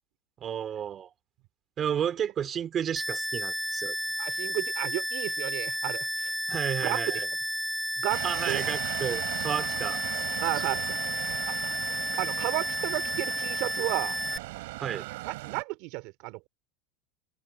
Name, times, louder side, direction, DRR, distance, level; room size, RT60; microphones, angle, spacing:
voice 1, 0.4-1.1 1.8-3.9 6.5-7.3 8.2-10.0 14.8-15.1, right 9 dB, 30° right, 2.9 m, -31 dB
sound 1, 3.0-14.4, equal, ahead, 2.7 m, -32 dB
voice 2, 4.2-6.3 6.8-7.2 8.0-8.7 10.4-11.0 11.5-11.7 12.2-14.2 15.2-16.5, right 23 dB, 60° right, 2.8 m, -33 dB
sound 2, 8.1-15.6, right 20 dB, 80° right, 4.5 m, -38 dB
supercardioid pair, 135°, 0 cm